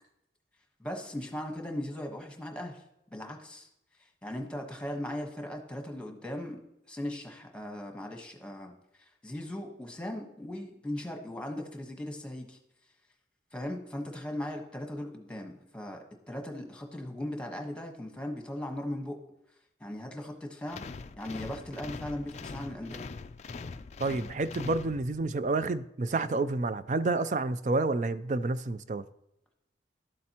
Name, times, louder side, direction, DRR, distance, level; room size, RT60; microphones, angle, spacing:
voice 1, 0.8-2.8 3.1-3.7 4.2-6.6 6.9-8.7 9.0-12.6 13.5-19.2 19.8-20.8 21.2-23.0, left 1 dB, 5° left, 1.2 m, -38 dB
sound 1, 20.7-25.4, left 4 dB, 40° left, 0.3 m, -42 dB
voice 2, 24.0-29.0, right 3 dB, 45° right, 0.4 m, -29 dB
12.0 x 7.6 x 2.9 m
head